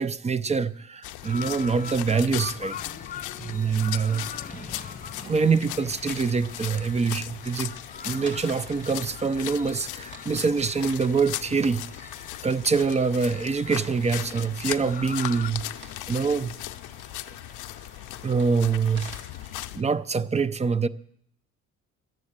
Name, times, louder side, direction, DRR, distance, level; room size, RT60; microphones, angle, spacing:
voice 1, 0.0-2.8 3.4-4.8 5.1-7.8 8.0-12.1 12.4-15.6 16.1-16.5 18.2-19.1 19.7-20.9, right 5 dB, 20° right, 0.5 m, -25 dB
sound 1, 1.0-19.8, left 15 dB, 85° left, 0.5 m, -38 dB
sound 2, 1.2-15.5, left 6 dB, 25° left, 0.5 m, -43 dB
sound 3, 3.9-19.6, right 1 dB, 40° right, 2.4 m, -51 dB
12.0 x 7.5 x 8.7 m
cardioid pair, 90°, 30 cm